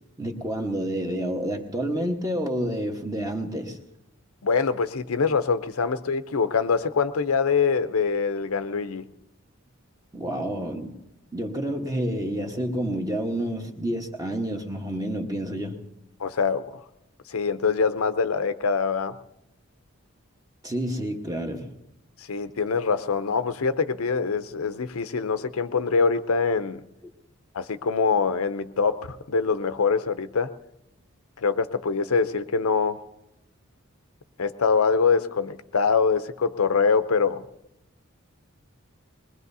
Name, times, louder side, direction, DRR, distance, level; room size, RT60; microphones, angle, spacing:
voice 1, 0.2-3.8 10.1-11.0 11.3-15.8 20.6-21.8, right 1 dB, 15° right, 2 dB, 1.2 m, -29 dB
voice 2, 4.4-9.1 16.2-16.7 17.3-19.2 22.3-26.8 27.5-30.5 31.4-33.0 34.4-37.4, left 5 dB, 85° left, 11 dB, 0.6 m, -24 dB
21.5 x 21.0 x 2.7 m, 0.90 s
head